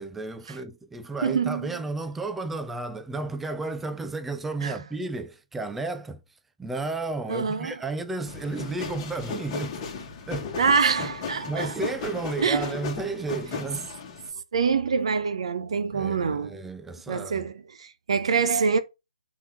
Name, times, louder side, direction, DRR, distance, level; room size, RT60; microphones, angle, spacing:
voice 1, 0.0-6.2 6.6-10.5 11.5-13.9 15.9-17.5, right 3 dB, 5° right, 0.4 m, -33 dB
voice 2, 1.2-1.8 4.6-4.8 7.3-7.7 10.6-11.8 12.4-12.7 14.5-16.6 17.1-18.8, right 5 dB, 50° right, 1.0 m, -25 dB
sound 1, 8.3-14.3, left 5 dB, 20° left, 1.8 m, -36 dB
6.9 x 4.4 x 5.6 m
figure-of-eight pair, 140°, 4 cm